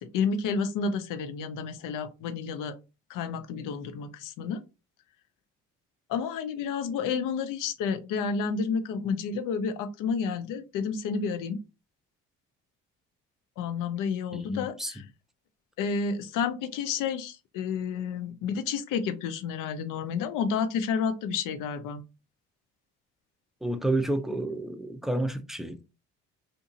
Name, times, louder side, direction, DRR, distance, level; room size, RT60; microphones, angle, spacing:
voice 1, 0.0-2.8 3.1-4.6 6.1-11.6 13.6-15.0 15.8-22.0, left 6 dB, 70° left, 0.6 m, -30 dB
voice 2, 14.3-14.9 23.6-25.8, right 1 dB, ahead, 0.4 m, -30 dB
2.8 x 2.6 x 2.5 m
supercardioid pair, 65°, 33 cm